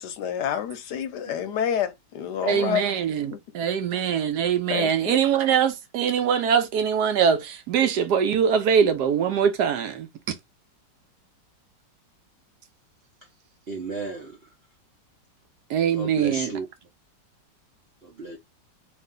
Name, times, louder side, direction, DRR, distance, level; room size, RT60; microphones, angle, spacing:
voice 1, 0.0-2.9 3.3-3.4 4.7-5.2, left 9 dB, 75° left, 1.2 m, -28 dB
voice 2, 2.4-10.3 15.7-16.5, right 7 dB, 70° right, 1.2 m, -23 dB
voice 3, 13.7-14.4 15.9-16.7 18.0-18.4, right 3 dB, 50° right, 0.8 m, -33 dB
3.3 x 2.6 x 3.6 m
omnidirectional pair, 1.9 m